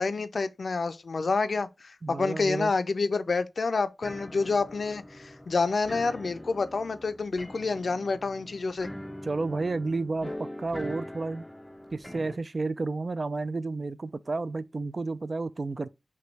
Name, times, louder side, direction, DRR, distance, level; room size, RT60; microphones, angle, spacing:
voice 1, 0.0-8.9, left 4 dB, 80° left, 0.4 m, -28 dB
voice 2, 2.0-2.7 9.2-11.4 11.9-15.9, right 3 dB, 60° right, 0.3 m, -31 dB
sound 1, 4.0-12.4, left 1 dB, 15° left, 0.4 m, -42 dB
6.0 x 2.2 x 3.2 m
wide cardioid pair, 55°, 0 cm